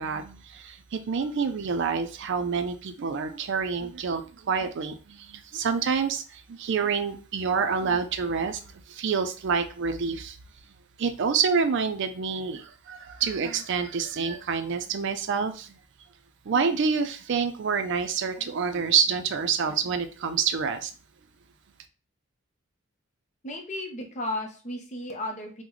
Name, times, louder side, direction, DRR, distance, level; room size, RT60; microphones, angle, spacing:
voice 1, 0.0-10.4 11.0-15.8 16.5-20.9, right 5 dB, 60° right, 0.4 m, -27 dB
voice 2, 23.4-25.6, left 1 dB, 35° left, 0.6 m, -34 dB
3.8 x 2.1 x 3.0 m
head